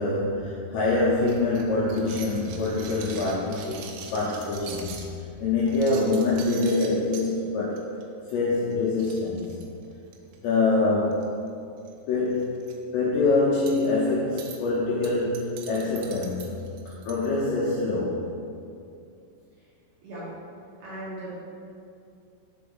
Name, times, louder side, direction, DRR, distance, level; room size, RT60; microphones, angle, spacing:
voice 1, 0.0-3.9 4.1-5.0 5.4-7.8 8.3-9.5 10.4-11.3 12.1-12.5 12.9-18.3, left 3 dB, 90° left, -6 dB, 2.5 m, -25 dB
sound 1, 1.3-5.1 5.6-7.3 7.8-8.0 8.3-8.4 8.7-8.8 9.0-10.4 11.1-11.5 11.8-11.9 12.3-12.7 13.7-13.9 14.4-14.6 15.0-17.3, right 6 dB, 90° right, 3.1 m, -43 dB
voice 2, 20.8-21.3, right 1 dB, 65° right, -10 dB, 2.8 m, -37 dB
6.9 x 3.9 x 3.6 m, 2.5 s
omnidirectional pair, 5.6 m